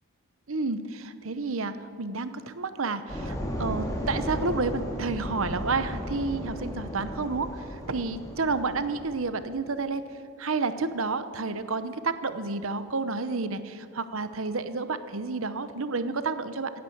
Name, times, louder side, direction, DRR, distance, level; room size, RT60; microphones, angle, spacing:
voice 1, 0.5-10.1 10.4-16.7, right 3 dB, 65° right, 12 dB, 0.9 m, -30 dB
sound 1, 3.1-9.4, equal, 15° left, 2.4 m, -35 dB
15.5 x 10.5 x 8.6 m, 2.4 s
head